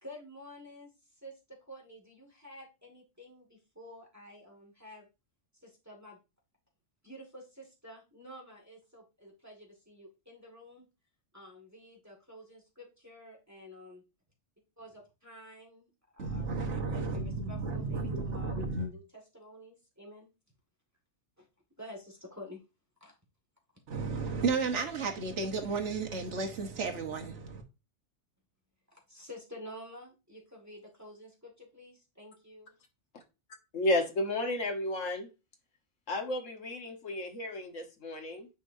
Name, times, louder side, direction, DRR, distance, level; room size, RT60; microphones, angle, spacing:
voice 1, 0.0-5.1 5.5-6.2 7.0-10.8 11.3-14.0 14.8-18.0 18.3-20.3 21.4-21.5 21.8-22.6 23.0-23.1 28.9-32.7, equal, 15° right, 1.9 m, -50 dB
voice 2, 16.2-18.9 23.9-27.6, right 4 dB, 70° right, 1.5 m, -33 dB
voice 3, 33.7-35.3 36.1-38.5, left 1 dB, 85° left, 1.7 m, -32 dB
8.8 x 4.8 x 2.7 m
omnidirectional pair, 1.3 m